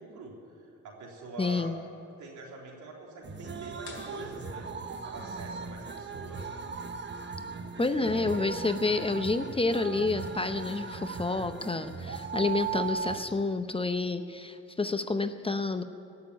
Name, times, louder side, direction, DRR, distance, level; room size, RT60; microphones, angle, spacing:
voice 1, 0.0-1.7 2.2-4.7 5.0-6.6 7.9-8.5, right 3 dB, 75° right, -1 dB, 3.7 m, -44 dB
voice 2, 1.4-1.8 7.8-15.8, left 3 dB, 20° left, 9 dB, 0.7 m, -29 dB
sound 1, 3.2-13.2, right 5 dB, 35° right, 1.2 m, -38 dB
sound 2, 3.8-5.5, left 3 dB, 45° left, 3.5 m, -50 dB
18.5 x 6.9 x 9.5 m, 3.0 s
cardioid pair, 90°, 30 cm